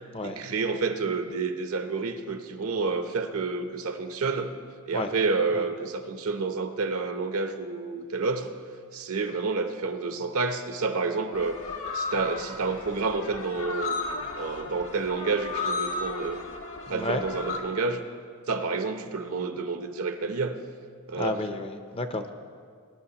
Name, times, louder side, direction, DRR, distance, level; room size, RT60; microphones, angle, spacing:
voice 1, 0.2-4.5 4.9-8.5 8.9-11.6 11.9-16.5 16.9-18.0 18.5-20.6 21.1-21.4, right 4 dB, 70° right, 7 dB, 0.8 m, -29 dB
sound 1, 11.3-17.6, left 3 dB, 60° left, 1.2 m, -34 dB
voice 2, 16.9-17.2 21.2-22.3, left 2 dB, 25° left, 8 dB, 0.5 m, -31 dB
20.5 x 10.5 x 2.9 m, 2.1 s
head